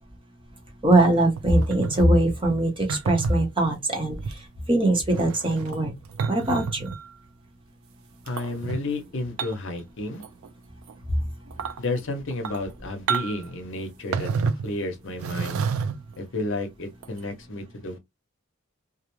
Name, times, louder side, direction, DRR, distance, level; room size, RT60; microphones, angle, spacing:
voice 1, 0.8-4.2 4.7-5.9 6.3-6.9, right 1 dB, 25° right, 0.8 m, -21 dB
sound 1, 1.4-2.1 2.9-3.4 4.2-4.4 5.0-7.1 8.3-8.8 9.4-9.8 10.1-10.5 10.9-11.0 11.5-11.8 12.3-12.7 13.1-13.5 14.1-14.7 15.2-16.1 17.0-17.2, right 5 dB, 80° right, 0.4 m, -29 dB
voice 2, 8.3-10.2 11.8-14.3 14.6-15.6 16.2-18.0, left 2 dB, 65° left, 0.7 m, -31 dB
2.4 x 2.1 x 2.9 m
head